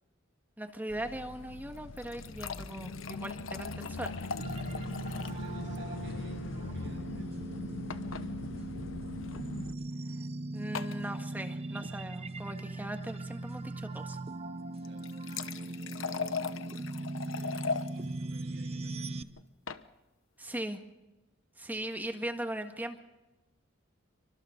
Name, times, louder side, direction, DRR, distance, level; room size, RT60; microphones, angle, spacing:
voice 1, 0.6-4.3 10.5-14.2 20.4-20.8 21.6-23.0, right 1 dB, 10° right, 5 dB, 1.7 m, -39 dB
sound 1, 0.9-9.7, left 3 dB, 70° left, 0.7 m, -41 dB
sound 2, 1.7-5.5 5.7-5.8 6.1-6.2 7.9-8.3 9.2-9.4 10.7-11.0 14.8-17.9 19.4-19.8, left 5 dB, 90° left, 1.1 m, -39 dB
sound 3, 4.4-19.2, right 2 dB, 30° right, 0.8 m, -39 dB
voice 2, 4.7-8.5 14.7-16.4 17.2-19.2, right 1 dB, 65° right, 2 dB, 7.0 m, -57 dB
28.5 x 24.5 x 3.9 m, 1.0 s
head